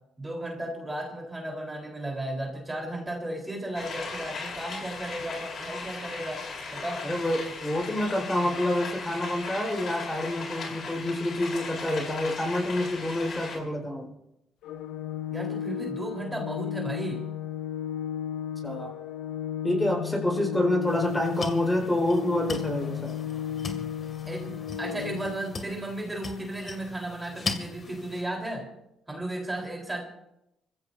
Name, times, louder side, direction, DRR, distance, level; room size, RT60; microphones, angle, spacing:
voice 1, 0.2-7.1 15.3-17.3 24.3-28.7 29.1-30.0, right 1 dB, 15° right, 0 dB, 4.0 m, -35 dB
sound 1, 3.7-13.6, left 4 dB, 60° left, 4.0 m, -38 dB
voice 2, 7.0-14.1 18.6-18.9 19.6-23.2, left 1 dB, 15° left, 0 dB, 4.6 m, -27 dB
Organ, 14.6-25.6, left 9 dB, 80° left, 0.5 m, -34 dB
sound 2, 20.9-28.2, left 4 dB, 45° left, 2.3 m, -39 dB
26.5 x 15.5 x 2.7 m, 0.85 s
cardioid pair, 75°, 0 cm